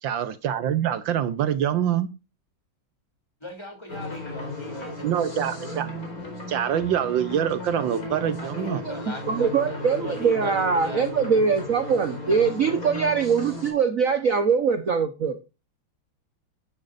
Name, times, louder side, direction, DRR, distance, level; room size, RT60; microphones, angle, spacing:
voice 1, 0.0-2.1 5.0-5.9 6.5-8.8, right 9 dB, 70° right, 12 dB, 1.5 m, -25 dB
voice 2, 3.4-5.2 7.7-11.1, left 1 dB, 15° left, 2 dB, 3.1 m, -39 dB
sound 1, 3.9-13.7, left 1 dB, 45° left, 4.5 m, -35 dB
voice 3, 9.3-15.3, right 6 dB, 45° right, 7 dB, 1.3 m, -22 dB
11.5 x 11.0 x 2.6 m, 0.29 s
omnidirectional pair, 2.2 m